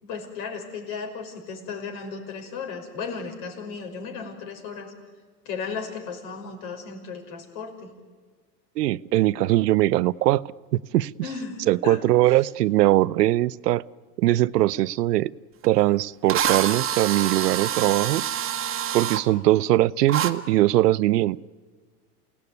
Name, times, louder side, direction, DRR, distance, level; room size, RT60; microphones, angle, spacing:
voice 1, 0.0-4.9 5.4-7.9 11.2-12.0 12.3-12.4, left 5 dB, 55° left, 4 dB, 5.9 m, -35 dB
voice 2, 8.8-10.4 10.7-11.1 11.7-13.8 14.2-15.3 15.6-18.2 18.9-21.4, right 15 dB, 80° right, 18 dB, 0.7 m, -21 dB
Drill, 15.6-15.7 16.3-19.2 20.1-20.3, right 9 dB, 25° right, 1.5 m, -26 dB
28.0 x 18.0 x 9.6 m, 1.5 s
hypercardioid pair, 115°, 47 cm